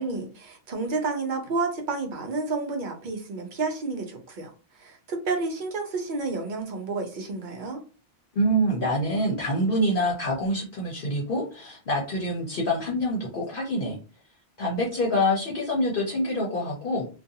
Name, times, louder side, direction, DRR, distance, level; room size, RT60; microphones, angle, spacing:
voice 1, 0.0-7.8, right 3 dB, 55° right, 3 dB, 0.7 m, -30 dB
voice 2, 8.3-14.0 14.6-17.1, equal, 60° left, -2 dB, 0.8 m, -26 dB
2.4 x 2.2 x 2.7 m, 0.34 s
omnidirectional pair, 1.1 m